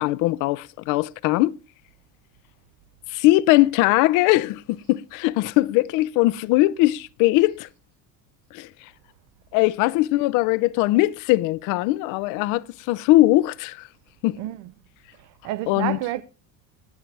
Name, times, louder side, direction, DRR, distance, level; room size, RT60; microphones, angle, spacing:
voice 1, 0.0-1.6 3.1-4.6 4.9-7.7 8.5-8.7 9.5-13.9 14.2-14.4 15.7-16.0, left 18 dB, 60° left, 0.6 m, -20 dB
voice 2, 15.2-16.2, right 16 dB, 55° right, 0.6 m, -30 dB
19.5 x 7.4 x 3.3 m
cardioid pair, 170°, 36 cm